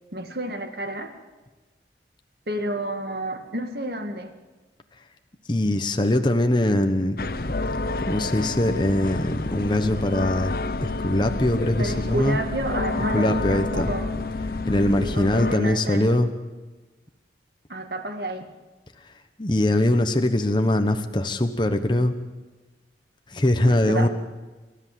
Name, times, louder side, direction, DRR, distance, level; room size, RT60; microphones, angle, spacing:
voice 1, 0.1-1.1 2.5-4.3 11.8-14.1 15.0-16.2 17.7-18.5 23.6-24.1, right 1 dB, 60° right, 6 dB, 2.0 m, -30 dB
voice 2, 5.5-7.2 8.1-12.4 13.1-13.9 14.7-16.3 19.4-22.1 23.3-24.1, left 1 dB, 25° left, 7 dB, 1.2 m, -22 dB
sound 1, 7.2-15.5, left 3 dB, 55° left, 0.9 m, -29 dB
29.0 x 13.5 x 7.7 m, 1.2 s
head